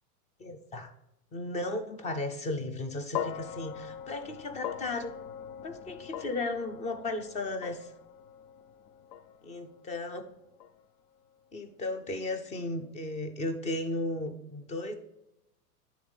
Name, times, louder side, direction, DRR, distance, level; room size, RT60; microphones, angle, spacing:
voice 1, 0.4-0.9 1.3-5.1 5.6-7.9 9.4-10.2 11.5-15.0, left 2 dB, 15° left, 8 dB, 0.4 m, -35 dB
sound 1, 3.1-11.5, left 9 dB, 65° left, 0.5 m, -42 dB
9.4 x 3.7 x 5.0 m, 0.86 s
hypercardioid pair, 120°, 48 cm